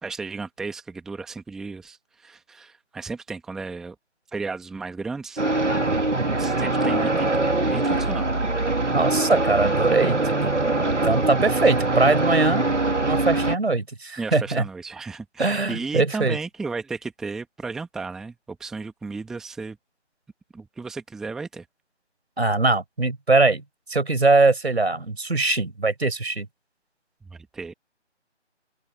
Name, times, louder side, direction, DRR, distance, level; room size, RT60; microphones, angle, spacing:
voice 1, 0.0-4.0 4.3-5.4 6.4-8.3 14.2-19.8 20.5-21.7 27.2-27.7, right 4 dB, ahead, 1.8 m, -34 dB
sound 1, 5.4-13.6, right 2 dB, 80° right, 2.4 m, -23 dB
voice 2, 8.9-10.6 11.0-12.7 13.0-14.6 15.4-16.4 22.4-23.6 23.9-26.5, right 3 dB, 60° right, 5.1 m, -21 dB
open air
figure-of-eight pair, 160°, 36 cm